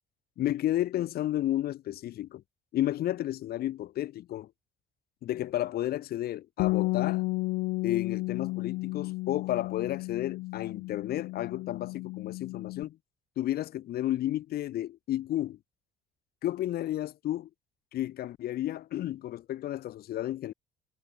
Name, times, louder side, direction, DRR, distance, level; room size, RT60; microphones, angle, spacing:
voice 1, 0.4-2.4 2.7-4.5 5.2-7.2 7.8-13.0 13.4-15.6 16.4-17.5 17.9-20.5, left 13 dB, 65° left, 2.2 m, -32 dB
Bass guitar, 6.6-12.8, left 22 dB, 85° left, 0.4 m, -32 dB
cardioid pair, 110°, 17 cm